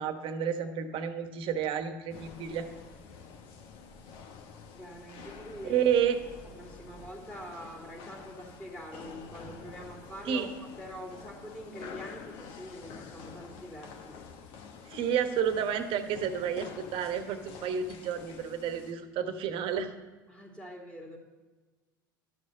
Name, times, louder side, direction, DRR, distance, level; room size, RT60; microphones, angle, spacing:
voice 1, 0.0-2.7 5.6-6.2 10.3-10.5 14.9-19.9, right 8 dB, 55° right, 8 dB, 1.1 m, -30 dB
sound 1, 2.1-18.9, left 5 dB, 55° left, 1.1 m, -48 dB
voice 2, 4.7-5.8 6.5-10.5 10.8-14.2 20.3-21.2, equal, 5° left, -1 dB, 2.3 m, -44 dB
11.0 x 6.5 x 5.4 m, 1.3 s
hypercardioid pair, 75°, 11 cm